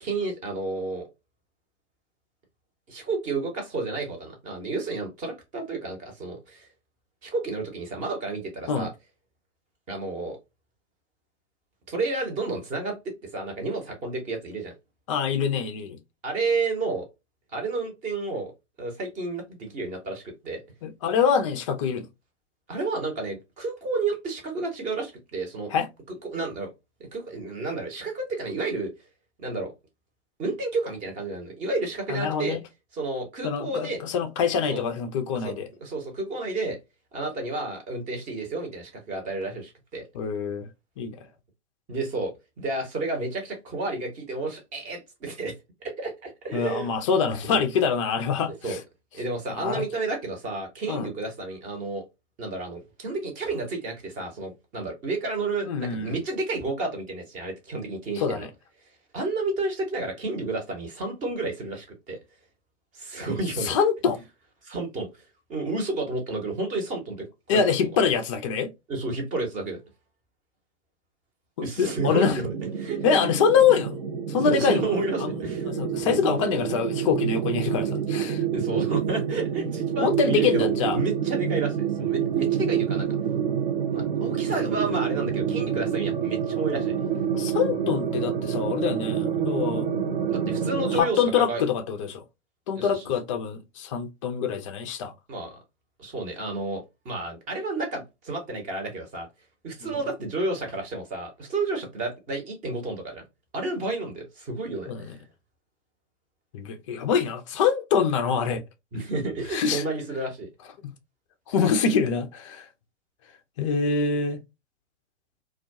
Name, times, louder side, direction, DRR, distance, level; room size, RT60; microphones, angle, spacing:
voice 1, 0.0-1.1 2.9-6.7 7.2-8.9 9.9-10.4 11.9-14.7 16.2-17.1 17.5-18.5 18.8-20.6 22.7-25.7 26.1-26.7 27.1-28.9 29.4-29.7 30.4-32.6 32.9-34.0 34.7-34.8 35.3-35.5 35.8-36.8 37.1-40.0 41.9-42.3 42.6-45.5 45.8-46.9 47.5-47.6 48.6-48.8 49.1-52.0 52.4-58.5 59.1-62.2 62.9-63.8 64.6-65.1 65.5-67.2 67.5-67.6 68.9-69.8 71.6-73.0 74.4-75.7 76.0-76.6 78.5-83.1 83.9-86.9 90.3-91.6 92.8-93.0 95.3-95.6 96.0-99.3 99.6-103.2 103.5-105.2 108.9-110.5, right 3 dB, 20° right, 0.8 m, -31 dB
voice 2, 15.1-16.0 20.8-22.1 25.7-25.9 32.1-32.6 33.4-35.7 40.1-40.7 41.0-41.1 46.5-48.8 49.5-49.8 50.9-51.1 55.7-56.2 58.2-58.5 63.6-64.2 67.5-68.7 71.6-72.4 73.0-74.0 74.3-74.8 75.2-75.3 75.7-78.4 80.0-81.0 87.4-89.9 90.9-92.2 92.7-95.1 99.9-100.0 104.9-105.2 106.5-108.6 109.5-109.9 110.8-110.9 111.5-112.7 113.6-114.4, left 6 dB, 30° left, 0.3 m, -25 dB
sound 1, 71.8-91.0, right 8 dB, 45° right, 0.5 m, -28 dB
2.3 x 2.2 x 2.5 m
figure-of-eight pair, 110°, 36 cm